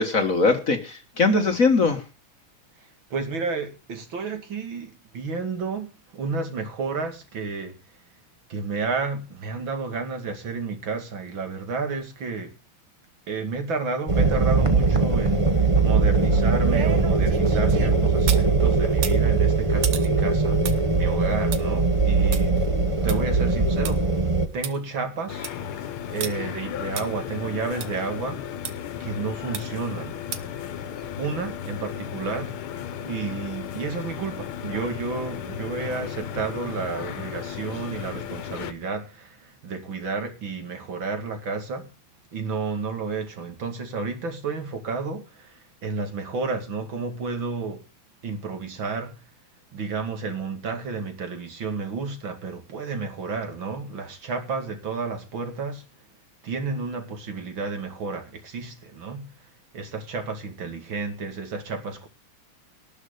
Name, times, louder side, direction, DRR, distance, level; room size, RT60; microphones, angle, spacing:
voice 1, 0.0-2.0, left 3 dB, 45° left, 1.6 m, -21 dB
voice 2, 2.8-8.0 8.5-12.6 13.3-22.6 23.0-24.1 24.5-28.4 29.0-30.6 31.2-32.6 33.0-41.9 42.3-47.8 48.2-49.3 49.7-55.9 56.4-62.1, right 4 dB, 65° right, 3.0 m, -31 dB
sound 1, 14.1-24.5, right 4 dB, 25° right, 0.7 m, -21 dB
sound 2, 16.0-18.5 18.9-23.9 24.3-24.4 24.6-24.7 25.2-25.6 26.2-26.3 27.0-27.1 27.8-27.9 28.6-28.7 29.5-29.9 30.3-30.6 31.0-31.1, right 9 dB, 80° right, 2.1 m, -35 dB
sound 3, 25.3-38.7, left 9 dB, 75° left, 1.8 m, -35 dB
18.5 x 6.6 x 6.5 m
omnidirectional pair, 2.4 m